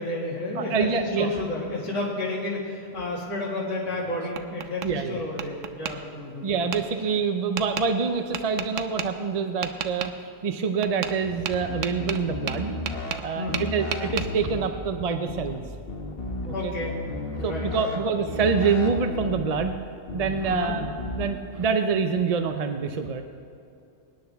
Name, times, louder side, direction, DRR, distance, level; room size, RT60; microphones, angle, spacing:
voice 1, 0.0-6.5 13.3-13.7 16.5-16.9 17.4-18.0 20.4-20.7, left 2 dB, 85° left, -7 dB, 2.5 m, -31 dB
voice 2, 0.6-1.3 4.8-5.2 6.4-10.1 10.4-12.7 13.2-15.6 16.4-16.7 17.4-19.8 20.1-20.8 21.2-23.2, right 5 dB, 45° right, 7 dB, 0.5 m, -26 dB
Tap, 3.9-4.9 5.4-5.9 6.7-6.8 7.6-7.9 8.3-9.1 9.6-10.1 10.8-11.2 11.5-13.3 13.5-14.3, right 9 dB, 90° right, 1.0 m, -32 dB
sound 1, 11.7-13.2 13.5-14.7 15.3-15.6 15.9-18.0 18.3-19.5 20.1-20.4 20.7-21.3, left 2 dB, 50° left, 1.4 m, -33 dB
23.5 x 10.0 x 3.5 m, 2.6 s
omnidirectional pair, 1.3 m